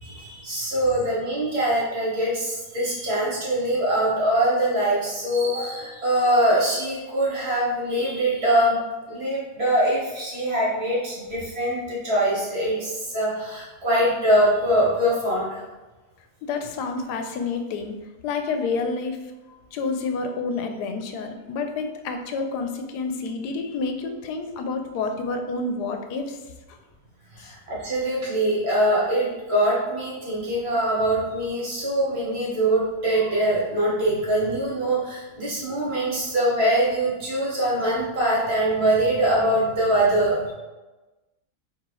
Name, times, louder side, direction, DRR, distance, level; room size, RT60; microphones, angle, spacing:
voice 1, 0.0-8.8 9.1-15.6 27.4-40.5, right 1 dB, 40° right, -6 dB, 1.5 m, -23 dB
voice 2, 16.4-18.0 18.2-19.3 19.7-26.4 27.4-27.5, left 4 dB, 85° left, 6 dB, 1.1 m, -29 dB
3.7 x 3.0 x 4.7 m, 1.1 s
omnidirectional pair, 1.7 m